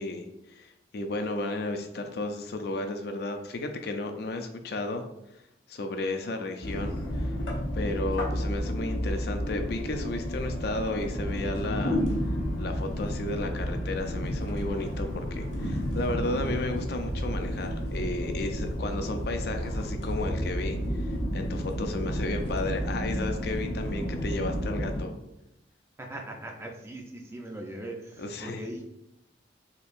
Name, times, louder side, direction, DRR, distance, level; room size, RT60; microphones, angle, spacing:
voice 1, 0.0-5.0 5.7-7.3 7.7-12.0 12.6-25.1 28.2-28.6, left 2 dB, 55° left, 5 dB, 0.4 m, -33 dB
sound 1, 6.6-25.0, equal, 85° left, 0.8 m, -31 dB
Organ, 11.0-16.4, equal, 70° right, 0.9 m, -46 dB
voice 2, 26.0-28.8, right 1 dB, 15° right, 1 dB, 0.4 m, -40 dB
4.3 x 2.7 x 2.5 m, 0.82 s
head